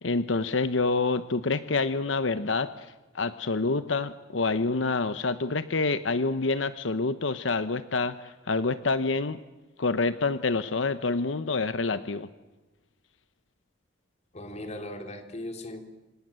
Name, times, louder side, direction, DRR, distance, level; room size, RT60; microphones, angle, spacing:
voice 1, 0.0-2.9 3.1-9.4 9.8-12.3, left 3 dB, 85° left, 12 dB, 0.9 m, -27 dB
voice 2, 14.3-15.8, left 1 dB, 35° left, 5 dB, 3.3 m, -38 dB
27.0 x 27.0 x 7.7 m, 1.1 s
head